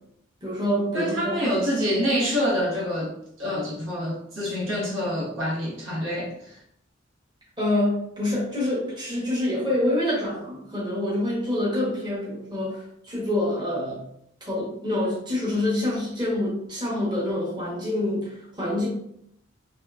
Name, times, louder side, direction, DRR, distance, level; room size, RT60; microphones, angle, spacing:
voice 1, 0.4-1.4 7.6-14.1 14.5-18.9, left 1 dB, 25° right, -7 dB, 1.0 m, -26 dB
voice 2, 0.9-6.6, equal, 90° right, -6 dB, 1.2 m, -26 dB
2.9 x 2.7 x 2.3 m, 0.72 s
head